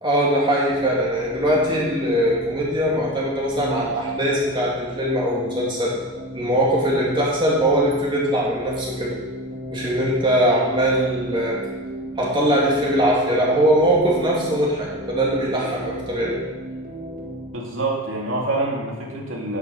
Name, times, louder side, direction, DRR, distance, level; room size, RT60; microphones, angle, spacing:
voice 1, 0.0-5.9 6.3-9.1 9.7-11.6 12.2-16.3, right 1 dB, 25° right, -4 dB, 2.1 m, -21 dB
sound 1, 0.7-17.5, equal, 45° right, 1.7 m, -35 dB
voice 2, 17.5-19.6, right 2 dB, 85° right, -2 dB, 2.3 m, -26 dB
10.5 x 7.0 x 5.6 m, 1.2 s
head